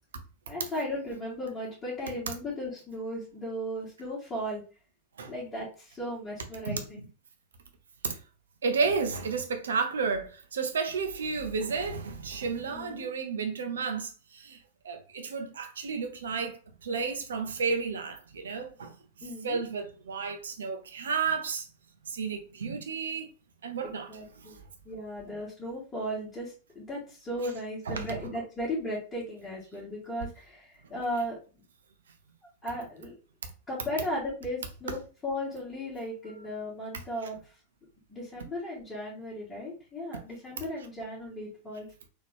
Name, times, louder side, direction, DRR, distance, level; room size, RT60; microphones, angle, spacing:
voice 1, 0.5-4.6 5.3-7.0 12.7-13.1 19.2-19.6 23.8-24.6 24.8-31.4 32.6-33.2 33.7-37.4 38.1-41.9, equal, 15° left, 2.2 m, -36 dB
voice 2, 6.7-7.0 8.0-8.2 8.6-14.6 14.8-18.9 19.2-21.7 22.0-23.3 23.6-24.1 24.4-24.6 27.9-28.2 40.1-40.2, right 5 dB, 65° right, 0.7 m, -32 dB
4.0 x 2.9 x 3.5 m
figure-of-eight pair, 90°, 0 cm